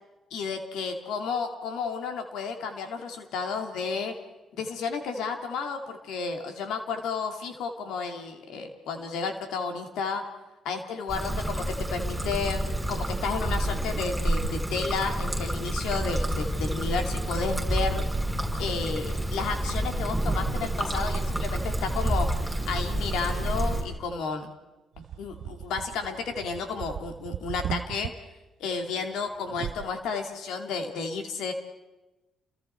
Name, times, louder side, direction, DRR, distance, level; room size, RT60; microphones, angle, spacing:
voice 1, 0.3-4.1 4.6-10.2 10.6-18.0 18.6-24.5 25.0-28.1 28.6-31.5, left 5 dB, 85° left, 5 dB, 2.6 m, -32 dB
Trickle dribble, 11.1-23.8, right 1 dB, 10° right, 7.9 m, -29 dB
sound 1, 25.0-28.1 29.5-29.9, right 9 dB, 70° right, 0.8 m, -37 dB
30.0 x 23.0 x 4.5 m, 1.1 s
cardioid pair, 90°, 0 cm